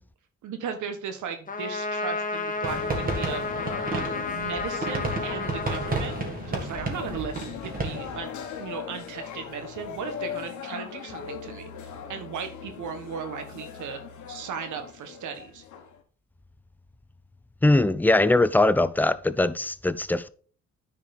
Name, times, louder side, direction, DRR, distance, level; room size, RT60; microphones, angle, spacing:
voice 1, 0.4-3.5 3.9-6.2 6.5-8.3 8.6-14.0 14.3-15.6, right 7 dB, 75° right, 1.6 m, -36 dB
Trumpet, 1.5-6.7, left 4 dB, 25° left, 1.1 m, -32 dB
sound 1, 2.6-8.2, right 3 dB, 30° right, 2.1 m, -32 dB
sound 2, 2.7-16.0, left 7 dB, 75° left, 1.4 m, -39 dB
voice 2, 17.6-20.3, left 2 dB, 5° left, 0.4 m, -21 dB
9.8 x 4.7 x 4.2 m
cardioid pair, 90°, 30 cm